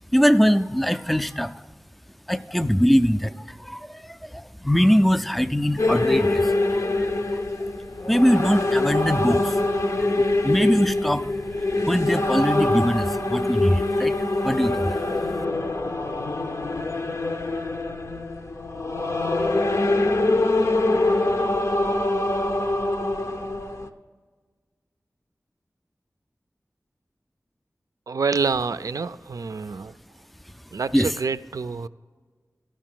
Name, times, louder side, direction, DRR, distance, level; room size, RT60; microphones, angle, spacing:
voice 1, 0.1-1.5 2.3-3.3 3.6-6.9 8.1-9.5 10.2-11.3 11.9-14.2 14.4-15.0 30.9-31.1, equal, ahead, 12 dB, 0.3 m, -22 dB
sound 1, 5.8-23.9, left 2 dB, 65° left, 0.7 m, -24 dB
voice 2, 28.1-29.9 30.7-31.9, right 4 dB, 85° right, 13 dB, 0.4 m, -27 dB
13.0 x 6.4 x 7.6 m, 1.5 s
wide cardioid pair, 65°, 6 cm